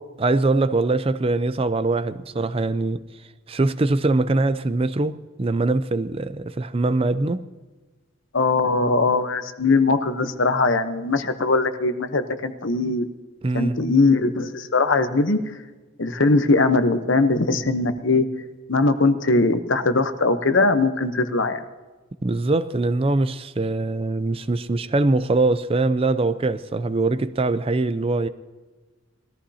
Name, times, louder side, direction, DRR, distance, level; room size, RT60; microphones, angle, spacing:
voice 1, 0.2-3.0 3.5-7.4 13.4-13.9 22.2-28.3, right 2 dB, 25° right, 0.4 m, -22 dB
voice 2, 8.3-13.1 13.5-15.4 16.0-18.3 18.7-21.6, left 3 dB, 60° left, 0.9 m, -20 dB
20.5 x 14.0 x 2.8 m
head